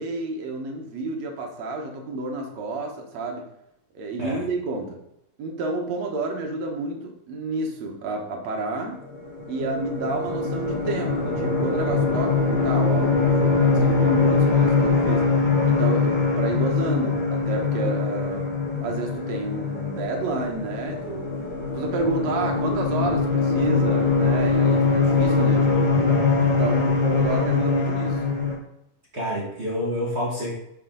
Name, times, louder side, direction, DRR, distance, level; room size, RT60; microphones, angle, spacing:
voice 1, 0.0-3.4 3.9-5.0 5.4-9.0 9.5-15.3 15.7-18.5 18.8-21.3 21.7-25.9 26.4-28.2, right 2 dB, 60° right, 2 dB, 2.3 m, -30 dB
sound 1, 9.1-28.6, left 4 dB, 40° left, 0.6 m, -22 dB
voice 2, 29.1-30.5, equal, 35° right, -5 dB, 1.1 m, -28 dB
9.2 x 6.3 x 3.9 m, 0.81 s
omnidirectional pair, 3.8 m